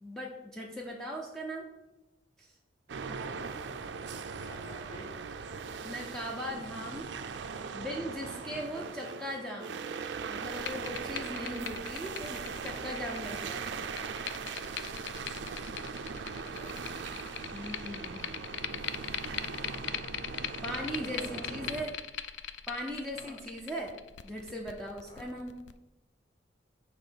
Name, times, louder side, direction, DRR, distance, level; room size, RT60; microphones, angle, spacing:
voice 1, 0.0-1.7 2.4-2.5 5.8-7.1 7.7-9.8 10.3-13.8 17.5-18.3 20.6-22.0 22.7-23.9 24.2-25.6, equal, 5° left, -2 dB, 0.5 m, -39 dB
sound 1, 2.9-21.8, right 5 dB, 80° right, 0.4 m, -40 dB
voice 2, 4.3-5.2 8.6-8.8 11.1-11.4 16.4-16.8 21.1-21.9 23.1-23.4 25.1-25.3, equal, 25° left, -2 dB, 0.9 m, -50 dB
sound 2, 10.4-25.7, left 9 dB, 75° left, 0.4 m, -41 dB
6.6 x 3.0 x 5.7 m, 0.99 s
head